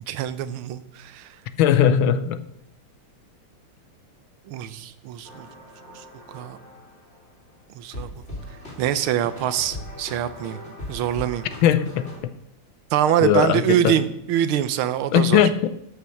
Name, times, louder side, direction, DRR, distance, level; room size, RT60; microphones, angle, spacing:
voice 1, 0.1-1.4 4.5-5.5 5.9-6.6 7.7-8.1 8.8-10.6 10.9-11.4 12.9-15.4, right 10 dB, 85° right, 14 dB, 1.6 m, -24 dB
voice 2, 1.6-2.4 11.6-12.1 13.2-14.0 15.1-15.7, left 9 dB, 75° left, 13 dB, 1.5 m, -19 dB
sound 1, 5.2-7.3 7.9-12.2, left 1 dB, 30° left, 2.9 m, -39 dB
12.0 x 5.8 x 6.4 m, 0.77 s
omnidirectional pair, 2.3 m